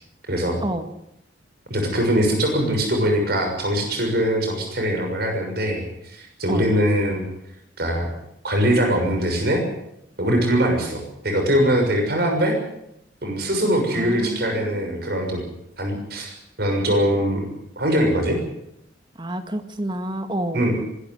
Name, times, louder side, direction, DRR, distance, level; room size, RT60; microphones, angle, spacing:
voice 1, 0.3-0.6 1.7-7.2 7.8-8.1 8.4-9.6 10.2-12.6 13.2-15.4 15.8-16.3 16.6-17.5 17.8-18.4 20.5-20.8, equal, 55° right, 3 dB, 6.5 m, -22 dB
voice 2, 13.9-15.1 19.2-20.7, right 1 dB, 25° right, 8 dB, 2.0 m, -29 dB
23.5 x 13.5 x 9.5 m, 0.79 s
head